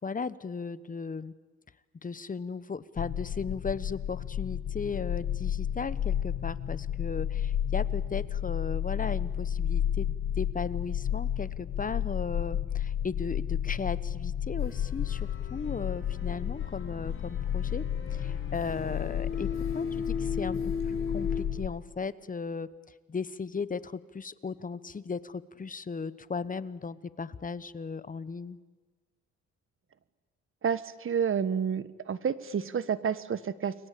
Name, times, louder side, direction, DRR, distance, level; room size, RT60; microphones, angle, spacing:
voice 1, 0.0-1.3 2.0-17.8 18.1-19.5 19.7-22.7 23.1-28.6, left 5 dB, 25° left, 16 dB, 1.1 m, -36 dB
sound 1, 3.0-21.7, left 10 dB, 65° left, 1.5 m, -32 dB
sound 2, 14.6-21.4, left 5 dB, 45° left, 5.5 m, -37 dB
voice 2, 30.6-33.7, right 7 dB, 45° right, 15 dB, 1.4 m, -30 dB
29.5 x 23.0 x 8.5 m, 1.3 s
cardioid pair, 90°, 30 cm